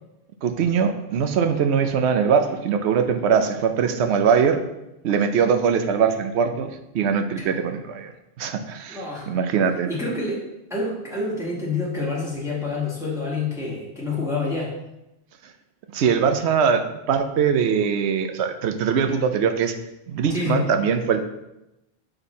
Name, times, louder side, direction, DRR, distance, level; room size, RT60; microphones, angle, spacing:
voice 1, 0.4-4.6 5.0-8.1 8.4-9.9 15.9-16.8 17.1-19.7 20.1-21.2, right 6 dB, 85° right, 8 dB, 0.9 m, -21 dB
voice 2, 8.9-9.3 9.9-10.4 10.7-14.7 20.3-20.6, left 3 dB, 5° right, -5 dB, 1.3 m, -27 dB
5.6 x 4.3 x 4.1 m, 0.92 s
omnidirectional pair, 1.1 m